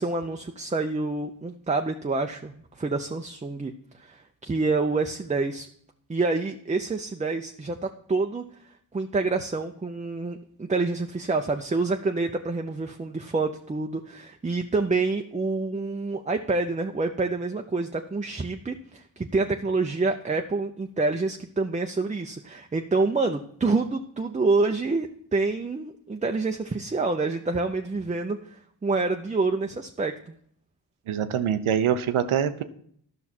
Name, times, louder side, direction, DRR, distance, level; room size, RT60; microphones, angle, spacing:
voice 1, 0.0-3.7 4.0-5.7 6.1-8.4 8.9-30.3, right 3 dB, 15° right, 5 dB, 0.5 m, -27 dB
voice 2, 31.1-32.6, right 8 dB, 85° right, 11 dB, 0.7 m, -24 dB
11.0 x 5.8 x 4.3 m, 0.65 s
cardioid pair, 50°, 47 cm